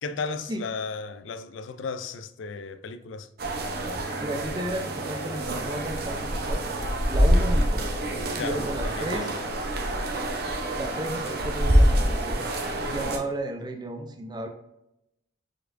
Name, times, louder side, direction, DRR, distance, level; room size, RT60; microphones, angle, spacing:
voice 1, 0.0-3.3 8.4-9.3, left 4 dB, 80° left, 0.4 m, -35 dB
sound 1, 3.4-13.2, equal, 55° right, 0.7 m, -26 dB
voice 2, 3.9-6.6 7.1-7.9 8.4-9.3 10.8-12.5 12.9-14.5, right 1 dB, 20° right, 0.5 m, -33 dB
4.6 x 4.3 x 2.5 m
head